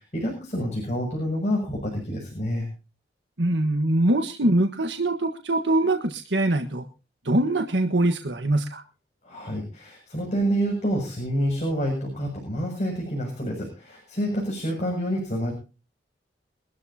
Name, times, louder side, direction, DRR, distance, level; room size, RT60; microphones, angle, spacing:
voice 1, 0.0-2.7 9.2-15.5, equal, 40° left, 1 dB, 7.0 m, -28 dB
voice 2, 3.4-6.8 7.2-8.8, right 1 dB, 85° right, 5 dB, 1.5 m, -23 dB
24.0 x 13.0 x 2.9 m, 0.33 s
head